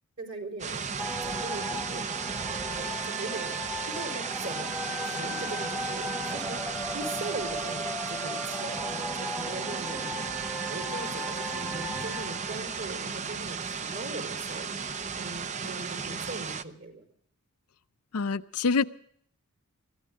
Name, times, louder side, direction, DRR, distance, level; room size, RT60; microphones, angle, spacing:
voice 1, 0.2-0.8 1.2-2.1 2.8-3.6 3.8-4.7 5.0-6.6 6.9-17.1, right 3 dB, 55° right, 4.4 m, -40 dB
sound 1, 0.6-16.6, right 5 dB, 30° right, 0.6 m, -35 dB
sound 2, 1.0-13.6, left 1 dB, 5° right, 1.2 m, -37 dB
voice 2, 18.1-18.8, left 4 dB, 80° left, 0.7 m, -26 dB
22.0 x 15.5 x 3.7 m
head